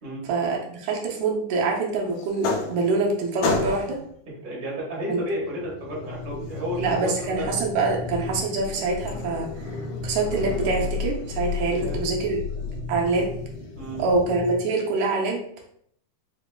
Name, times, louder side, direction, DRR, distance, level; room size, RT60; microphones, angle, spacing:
voice 1, 0.3-4.0 5.1-5.2 6.8-9.5 10.0-12.4 12.9-13.3 14.0-15.4, right 3 dB, 80° right, 0 dB, 2.1 m, -25 dB
sound 1, 2.2-3.1 3.4-4.1 5.2-14.6, left 4 dB, 75° left, 1.7 m, -32 dB
voice 2, 4.3-7.5 11.7-12.1 13.7-14.0, equal, 40° right, -5 dB, 0.7 m, -32 dB
4.9 x 3.3 x 2.3 m, 0.66 s
omnidirectional pair, 3.4 m